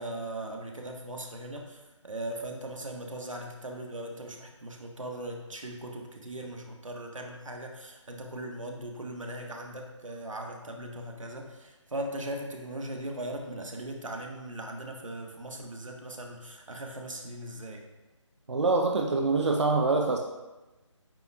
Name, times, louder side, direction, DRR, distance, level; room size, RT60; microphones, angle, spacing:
voice 1, 0.0-17.8, right 1 dB, 85° right, 1 dB, 1.4 m, -39 dB
voice 2, 18.5-20.2, right 3 dB, 65° right, 1 dB, 0.8 m, -25 dB
9.0 x 5.6 x 2.4 m, 1.1 s
figure-of-eight pair, 160°, 16 cm